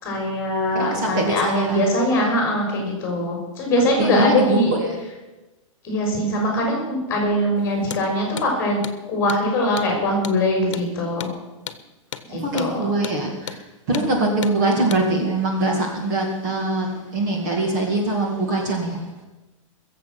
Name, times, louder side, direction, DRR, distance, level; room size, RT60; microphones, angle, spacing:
voice 1, 0.0-4.7 5.8-8.8 9.1-11.3 12.3-12.9 13.9-14.6, left 1 dB, 15° left, 0 dB, 4.2 m, -22 dB
voice 2, 0.7-1.8 4.0-5.0 12.3-13.6 13.9-19.0, right 2 dB, 35° right, 1 dB, 2.1 m, -23 dB
Hammer, 7.8-8.1 8.4-8.5 8.8-9.0 9.3-9.4 9.8-9.9 10.2-10.4 10.7-10.9 11.2-11.4 11.7-11.8 12.1-12.3 12.6-12.7 13.0-13.2 13.5-13.6 13.9-14.1 14.4-14.6 14.9-15.1, left 9 dB, 65° left, 1.1 m, -33 dB
22.0 x 7.6 x 6.0 m, 1.1 s
supercardioid pair, 175°, 17 cm